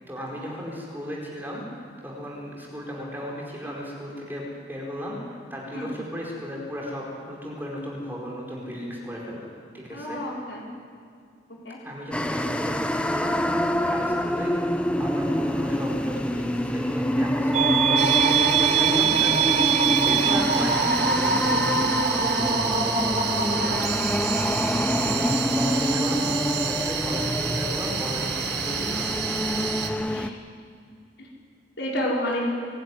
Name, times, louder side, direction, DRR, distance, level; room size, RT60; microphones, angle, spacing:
voice 1, 0.1-1.7 2.0-9.5 9.7-10.2 11.8-13.4 13.9-14.6 15.0-19.4 19.9-21.9 22.3-23.0 23.5-24.0 25.0-26.3 26.5-29.6, equal, 10° right, -3 dB, 4.5 m, -35 dB
voice 2, 9.9-10.7 11.6-11.8 13.6-14.0 19.4-19.9 23.6-24.8 30.1-30.3 31.2-31.3 31.8-32.5, equal, 75° left, -3 dB, 5.5 m, -32 dB
sound 1, 12.1-30.3, equal, 5° left, 0.6 m, -26 dB
sound 2, 17.5-26.9, right 7 dB, 35° right, 0.8 m, -25 dB
sound 3, 18.0-29.9, right 7 dB, 60° right, 1.6 m, -30 dB
25.5 x 11.5 x 9.8 m, 2.3 s
head